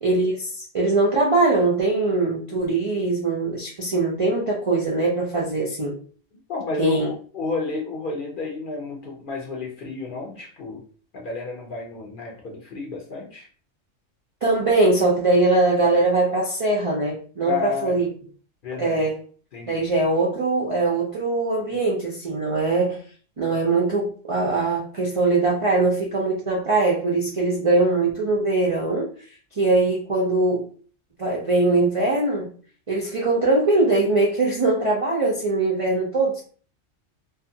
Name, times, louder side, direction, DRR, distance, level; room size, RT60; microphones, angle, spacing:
voice 1, 0.0-6.0 6.8-7.1 14.4-18.1 18.8-19.1 19.7-23.0 23.4-29.1 29.6-30.7 31.2-32.5 32.9-36.4, right 2 dB, 60° right, -3 dB, 0.3 m, -21 dB
voice 2, 6.5-10.8 11.1-13.5 17.5-18.0 18.6-19.0 19.5-19.8 21.7-21.8, left 4 dB, 55° left, -1 dB, 0.6 m, -31 dB
2.5 x 2.4 x 2.6 m, 0.42 s
omnidirectional pair, 1.3 m